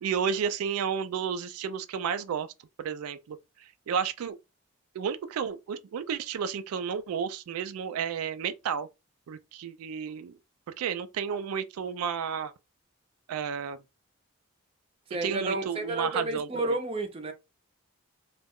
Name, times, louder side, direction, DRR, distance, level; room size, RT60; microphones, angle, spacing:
voice 1, 0.0-2.5 2.8-4.4 4.9-8.9 9.3-10.4 10.8-12.5 13.3-13.8 15.2-16.6, right 7 dB, 90° right, 0.3 m, -32 dB
voice 2, 15.1-17.3, right 2 dB, 25° right, 0.4 m, -31 dB
2.3 x 2.1 x 3.4 m
head